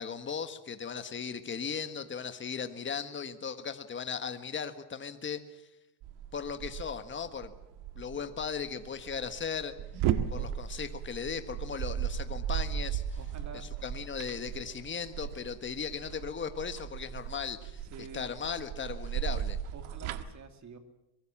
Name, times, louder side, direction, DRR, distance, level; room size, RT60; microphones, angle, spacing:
voice 1, 0.0-5.6 6.3-7.5 7.9-9.7 10.3-13.2 13.5-19.6, left 6 dB, 25° left, 9 dB, 1.5 m, -37 dB
sound 1, 6.0-20.2, right 10 dB, 80° right, 1.7 m, -36 dB
voice 2, 10.1-10.5 13.2-13.7 17.8-18.3 19.7-20.8, right 5 dB, 35° right, 7 dB, 2.8 m, -48 dB
23.5 x 22.0 x 7.3 m, 0.91 s
cardioid pair, 135°, 48 cm